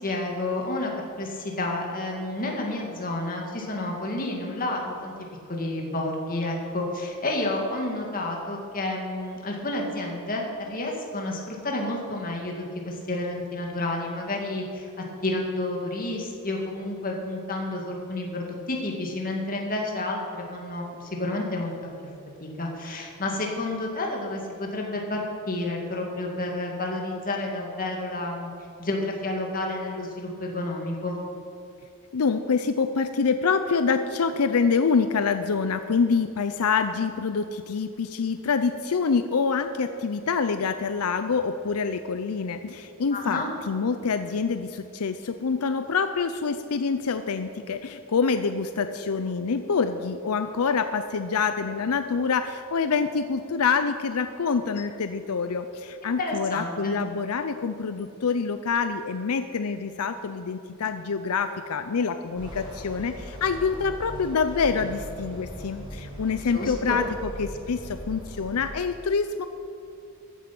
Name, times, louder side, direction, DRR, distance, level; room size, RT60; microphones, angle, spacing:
voice 1, 0.0-5.1 5.5-14.9 15.2-21.7 22.4-28.5 28.8-31.2 43.1-43.5 56.0-57.1 66.5-67.1, left 2 dB, 40° left, 0 dB, 2.2 m, -30 dB
voice 2, 32.1-67.0 67.4-69.5, left 5 dB, 90° left, 9 dB, 0.5 m, -26 dB
sound 1, 62.3-68.7, equal, 20° right, 2.5 m, -39 dB
14.5 x 9.2 x 6.0 m, 2.7 s
head